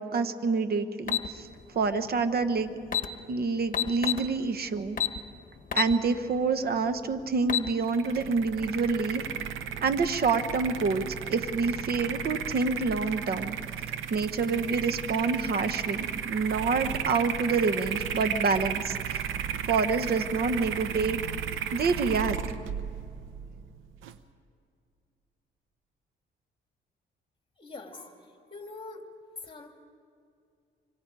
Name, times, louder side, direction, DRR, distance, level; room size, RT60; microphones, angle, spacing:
voice 1, 0.1-1.5 1.7-2.8 3.3-5.0 5.7-9.2 9.8-13.6 14.1-19.0 19.7-21.2 21.7-22.4, right 4 dB, 50° right, 10 dB, 1.2 m, -27 dB
sound 1, 1.1-1.3 2.5-2.6 2.8-3.1 3.7-4.3 5.0-5.2 5.7-5.9 6.4-6.5 7.3-7.7, left 9 dB, 45° left, 1.3 m, -27 dB
sound 2, 7.8-24.2, right 8 dB, 85° right, 0.8 m, -34 dB
voice 2, 27.6-29.0 29.4-29.7, left 3 dB, 25° left, 3 dB, 2.6 m, -44 dB
25.0 x 25.0 x 4.8 m, 2.3 s
cardioid pair, 90°, 20 cm